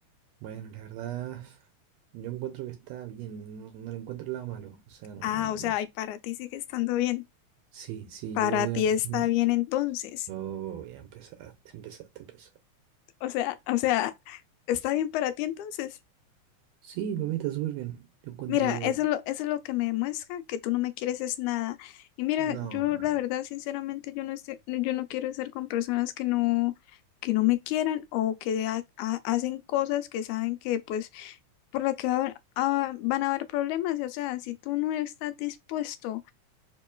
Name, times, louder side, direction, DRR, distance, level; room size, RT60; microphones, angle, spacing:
voice 1, 0.4-1.6 2.1-5.7 7.7-9.3 10.3-12.5 16.8-18.9 22.4-23.1, right 12 dB, 80° right, 1.6 m, -37 dB
voice 2, 5.2-7.2 8.4-10.3 13.2-14.4 14.7-16.0 18.5-26.7 27.2-31.4 31.7-36.3, left 14 dB, 85° left, 1.9 m, -29 dB
4.3 x 3.0 x 2.2 m
omnidirectional pair, 3.4 m